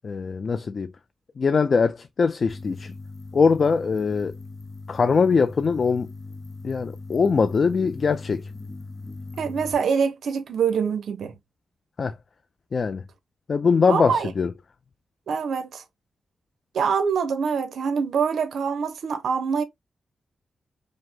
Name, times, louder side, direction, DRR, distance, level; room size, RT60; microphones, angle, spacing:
voice 1, 0.0-0.9 1.4-2.9 3.3-4.3 4.9-6.1 6.6-8.5 12.0-12.2 12.7-13.0 13.5-14.5, left 5 dB, 50° left, 0.4 m, -22 dB
Plane Buzz, 2.5-9.7, left 3 dB, 20° left, 0.9 m, -39 dB
voice 2, 9.4-11.4 13.9-14.3 15.3-15.8 16.7-19.6, right 6 dB, 80° right, 0.8 m, -25 dB
5.0 x 2.0 x 3.5 m
cardioid pair, 95°, 0 cm